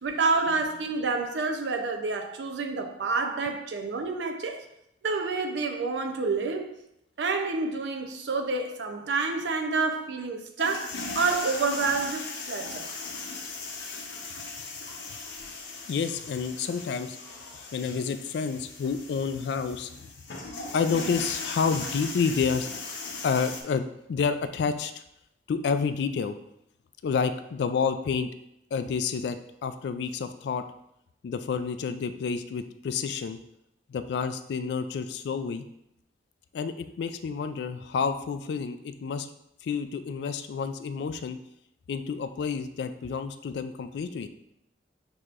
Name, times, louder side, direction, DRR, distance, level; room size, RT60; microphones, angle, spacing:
voice 1, 0.0-4.6 5.0-6.7 7.2-12.9, right 4 dB, 80° right, 0.5 m, -28 dB
sound 1, 10.6-23.6, left 3 dB, 85° left, 0.8 m, -38 dB
voice 2, 15.9-17.2 17.7-20.1 20.7-22.7 23.2-25.0 25.5-26.4 27.0-28.3 28.7-29.4 29.6-30.6 31.2-33.4 33.9-35.7 36.5-39.3 39.6-41.4 41.9-44.3, left 5 dB, 70° left, 0.3 m, -29 dB
6.3 x 2.9 x 2.4 m
head